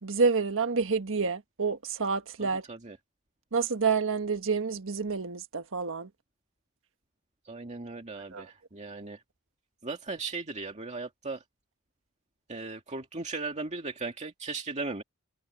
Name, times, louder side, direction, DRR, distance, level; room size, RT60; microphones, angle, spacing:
voice 1, 0.0-2.6 3.5-6.1 8.3-8.4, right 5 dB, 65° right, 1.5 m, -28 dB
voice 2, 7.5-9.2 9.8-11.4 12.5-15.0, right 3 dB, 30° right, 2.2 m, -37 dB
head